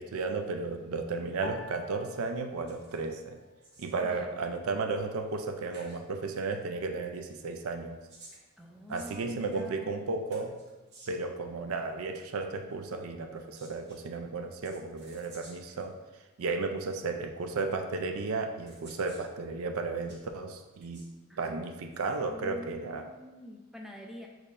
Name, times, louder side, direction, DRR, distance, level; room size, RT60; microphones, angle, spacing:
voice 1, 0.0-3.4 3.8-8.0 8.9-10.6 11.1-15.9 16.4-21.0 21.4-23.0, right 3 dB, 75° right, 6 dB, 0.4 m, -34 dB
sound 1, 1.4-3.9 4.2-5.1 5.7-6.1, left 2 dB, 50° left, 0.5 m, -48 dB
sound 2, 2.7-3.1 3.4-4.1 5.3-5.5 5.7-6.0 7.8-9.7 10.3-11.3 13.3-14.0 14.6-15.9 16.8-16.9 18.0-18.1 18.7-19.3 19.8-20.3 20.7-21.1, right 2 dB, 50° right, 0.9 m, -55 dB
voice 2, 4.0-4.4 8.6-10.0 21.3-21.5 22.3-24.3, equal, ahead, 0 dB, 0.4 m, -46 dB
6.5 x 3.1 x 2.5 m, 1.1 s
head